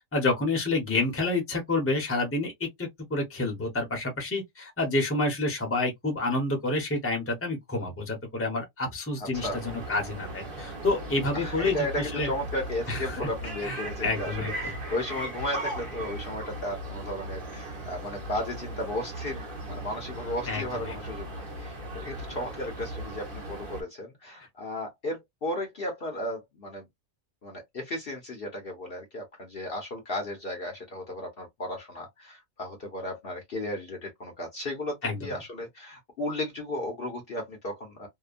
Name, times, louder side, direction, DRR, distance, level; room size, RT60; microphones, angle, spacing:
voice 1, 0.1-12.3 12.9-13.2 13.6-14.7 20.5-20.9 35.0-35.3, left 2 dB, 10° left, 0.7 m, -29 dB
voice 2, 9.2-9.6 11.3-26.9 27.4-38.1, left 1 dB, 50° left, 0.9 m, -35 dB
sound 1, 9.3-23.8, right 1 dB, 45° right, 1.1 m, -38 dB
2.8 x 2.2 x 2.4 m
omnidirectional pair, 1.4 m